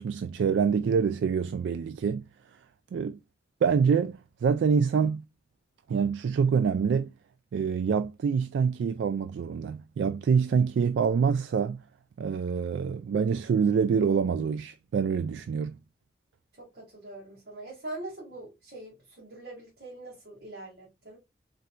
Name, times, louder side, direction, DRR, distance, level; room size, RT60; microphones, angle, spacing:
voice 1, 0.0-2.2 2.9-3.2 3.6-5.2 5.9-7.1 7.5-11.8 12.2-15.8, right 6 dB, 90° right, 0.3 m, -26 dB
voice 2, 16.5-21.2, right 2 dB, 60° right, 1.8 m, -43 dB
4.2 x 3.8 x 2.2 m
head